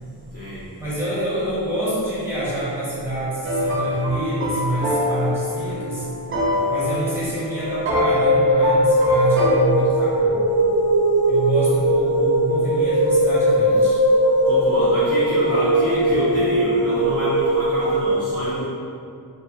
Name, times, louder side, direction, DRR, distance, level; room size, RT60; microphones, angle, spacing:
voice 1, 0.8-6.1 6.7-10.6 11.3-14.0, right 1 dB, 5° right, -11 dB, 0.8 m, -26 dB
sound 1, 3.4-9.5, left 1 dB, 30° right, 0.5 m, -24 dB
sound 2, 7.6-17.9, right 1 dB, 60° left, 0.9 m, -19 dB
voice 2, 14.4-18.7, left 1 dB, 35° left, -11 dB, 0.6 m, -26 dB
2.4 x 2.0 x 2.5 m, 2.4 s
wide cardioid pair, 90°, 43 cm